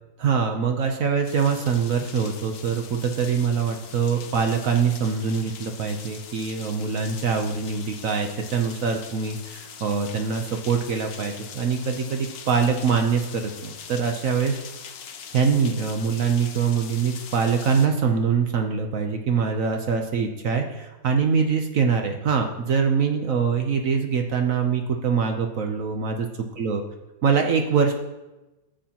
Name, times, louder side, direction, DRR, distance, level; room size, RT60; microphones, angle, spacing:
voice 1, 0.2-14.6 15.3-26.3 26.6-26.8 27.2-27.9, right 6 dB, 60° right, 4 dB, 0.9 m, -24 dB
sound 1, 1.2-17.9, left 7 dB, 80° left, 1.5 m, -42 dB
13.0 x 7.8 x 2.9 m, 1.1 s
omnidirectional pair, 2.0 m